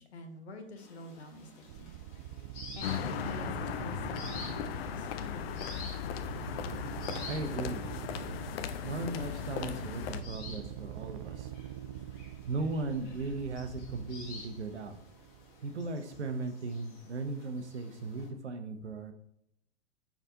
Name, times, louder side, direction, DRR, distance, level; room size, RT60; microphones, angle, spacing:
voice 1, 0.0-1.9 2.8-5.8, left 3 dB, 80° left, 5 dB, 0.9 m, -46 dB
sound 1, 0.8-18.3, left 3 dB, 40° left, 1.3 m, -51 dB
sound 2, 1.7-15.9, right 12 dB, 55° right, 0.4 m, -45 dB
sound 3, 2.8-10.2, left 9 dB, 65° left, 0.5 m, -37 dB
voice 2, 7.2-7.9 8.8-11.5 12.5-15.0 15.6-19.1, right 3 dB, 90° right, 7 dB, 0.7 m, -37 dB
4.8 x 3.4 x 2.7 m, 0.75 s
hypercardioid pair, 105°, 33 cm